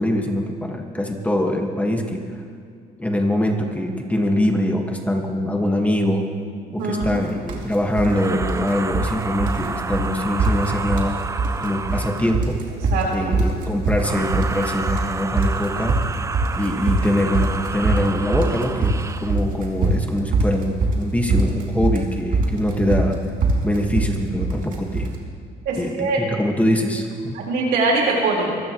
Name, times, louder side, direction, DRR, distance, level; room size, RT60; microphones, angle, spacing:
voice 1, 0.0-2.2 3.0-6.3 6.7-11.1 11.6-12.6 13.1-16.0 16.6-18.9 19.2-23.1 23.6-25.1 25.8-27.3, left 1 dB, 10° left, 2 dB, 1.7 m, -23 dB
voice 2, 6.8-7.2 12.9-13.3 25.6-26.2 27.3-28.6, right 3 dB, 80° right, -2 dB, 4.4 m, -22 dB
sound 1, 7.0-7.2 7.5-8.1 8.4-9.1 9.4-9.7 9.9-10.1 10.4-11.1 11.4-12.0 12.3-25.1, right 3 dB, 50° right, 2.7 m, -22 dB
sound 2, 8.0-12.6 13.9-19.4, right 4 dB, 15° right, 0.5 m, -30 dB
24.5 x 15.0 x 3.1 m, 2.3 s
cardioid pair, 110°, 17 cm